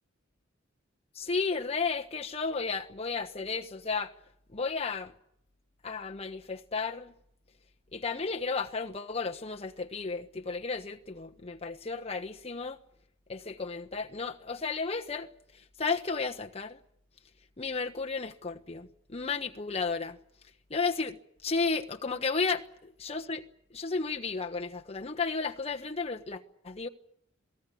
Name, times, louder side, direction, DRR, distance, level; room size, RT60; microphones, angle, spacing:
voice 1, 1.1-4.1 4.5-5.1 5.8-7.1 7.9-12.8 13.3-16.8 17.6-20.2 20.7-23.4 23.7-26.9, left 4 dB, 30° left, 1.2 m, -33 dB
27.5 x 18.0 x 8.6 m
head